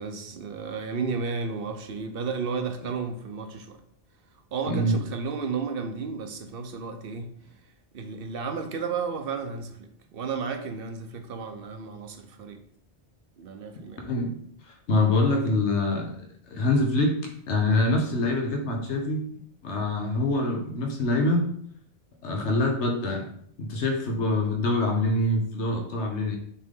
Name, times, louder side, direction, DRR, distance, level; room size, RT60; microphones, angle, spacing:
voice 1, 0.0-3.8 4.5-7.3 7.9-12.6 13.4-14.0, right 5 dB, 60° right, 7 dB, 0.9 m, -33 dB
voice 2, 4.7-5.0 14.0-14.4 14.6-16.1 16.5-19.2 19.6-21.5 22.2-23.3 23.6-26.4, left 2 dB, 90° left, 2 dB, 1.3 m, -25 dB
6.8 x 3.8 x 3.7 m, 0.65 s
omnidirectional pair, 1.1 m